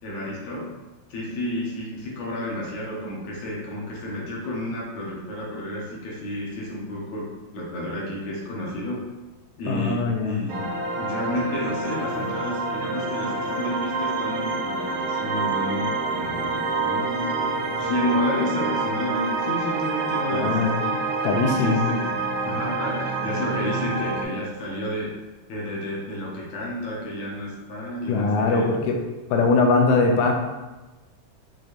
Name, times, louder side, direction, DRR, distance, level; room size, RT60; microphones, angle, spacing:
voice 1, 0.0-0.7 1.1-7.3 7.5-9.0 9.6-20.6 21.4-25.1 25.5-28.7, left 1 dB, 65° left, -4 dB, 2.1 m, -31 dB
voice 2, 9.7-10.4 20.3-20.8 21.2-21.9 28.1-29.0 29.3-30.3, left 4 dB, 90° left, 2 dB, 2.3 m, -21 dB
sound 1, 10.5-24.2, right 3 dB, 70° right, 2.2 m, -27 dB
6.6 x 3.0 x 2.6 m, 1.1 s
omnidirectional pair, 3.9 m